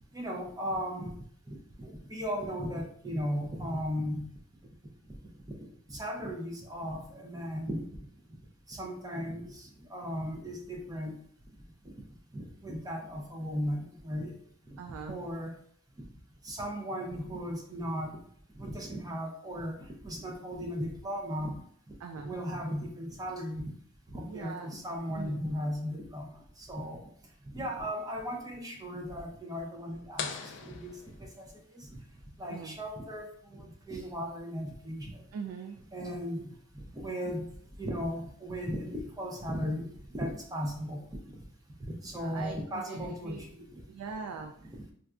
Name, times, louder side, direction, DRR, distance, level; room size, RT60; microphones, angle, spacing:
voice 1, 0.1-1.2 1.5-4.3 5.6-7.9 8.7-11.2 12.3-14.3 15.1-15.5 16.0-16.1 16.4-18.2 18.6-19.7 20.0-21.6 22.2-23.7 24.1-26.3 26.6-27.0 27.5-31.4 31.7-31.9 32.4-35.1 35.9-37.5 37.8-41.0 41.8-43.8, equal, 15° right, 0 dB, 0.5 m, -36 dB
voice 2, 14.8-15.2 22.0-22.3 24.3-24.8 25.1-25.4 32.5-32.8 35.3-35.8 42.1-43.4 43.9-44.7, right 5 dB, 80° right, 4 dB, 0.3 m, -41 dB
sound 1, 30.2-31.9, left 6 dB, 55° left, 0.3 m, -41 dB
4.0 x 2.3 x 2.4 m, 0.63 s
head